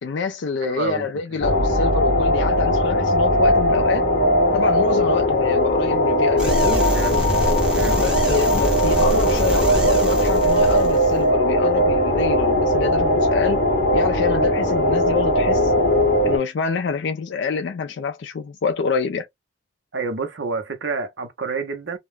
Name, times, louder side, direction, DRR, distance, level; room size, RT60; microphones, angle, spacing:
voice 1, 0.0-4.1 4.5-6.9 8.0-13.6 13.9-15.7 16.2-19.3, left 5 dB, 70° left, 0.3 m, -26 dB
voice 2, 0.6-1.6 6.8-7.4 7.7-8.0 19.9-22.0, right 4 dB, 80° right, 0.7 m, -29 dB
sound 1, 1.4-16.4, equal, 40° left, 0.8 m, -19 dB
sound 2, 6.4-11.2, equal, 5° right, 0.7 m, -25 dB
2.3 x 2.0 x 3.2 m
head